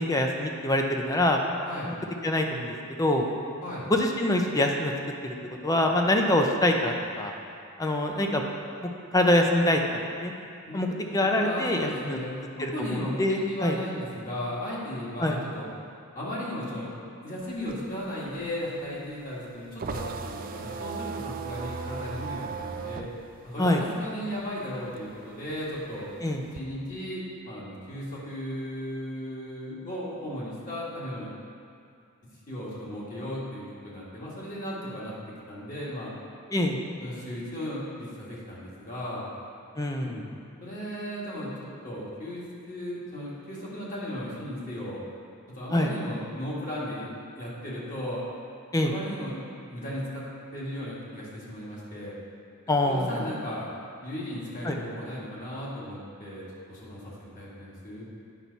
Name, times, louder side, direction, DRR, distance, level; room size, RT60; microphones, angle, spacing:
voice 1, 0.0-1.4 1.9-2.0 2.2-3.3 3.9-4.9 5.2-5.3 5.6-7.3 7.8-8.4 8.8-10.3 10.7-12.2 12.6-13.8 15.2-15.4 23.6-23.8 26.2-26.4 36.5-36.8 39.8-40.2 45.7-45.9 48.7-48.9 52.7-53.3 54.6-54.8, left 1 dB, 15° left, 2 dB, 0.6 m, -25 dB
voice 2, 10.7-12.5 12.7-15.7 16.2-16.9 17.2-23.1 23.4-26.1 26.5-31.3 32.5-35.1 35.5-36.1 37.0-39.3 40.0-40.2 40.6-45.0 45.5-48.2 48.8-49.4 49.7-50.2 50.5-52.2 52.8-53.7 54.0-56.4 56.7-58.1, equal, 40° left, -7 dB, 1.9 m, -36 dB
sound 1, 17.4-24.5 24.8-26.6, right 5 dB, 40° right, 0.4 m, -37 dB
9.1 x 5.8 x 4.1 m, 2.4 s
head